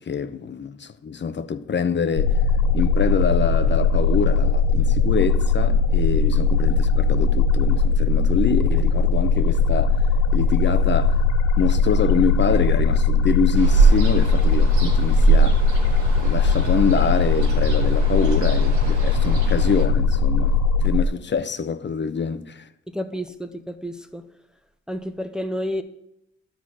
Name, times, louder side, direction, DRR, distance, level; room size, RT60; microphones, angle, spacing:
voice 1, 0.0-2.4 2.7-10.0 10.3-11.2 11.6-15.6 16.2-22.7, left 6 dB, 40° left, 0.8 m, -25 dB
sound 1, 2.2-21.1, left 4 dB, 75° left, 0.7 m, -19 dB
Ocean, 13.5-19.9, right 4 dB, 85° right, 1.6 m, -23 dB
voice 2, 22.9-24.3 24.9-25.8, equal, ahead, 0.9 m, -30 dB
11.5 x 4.2 x 6.2 m
supercardioid pair, 65°, 29 cm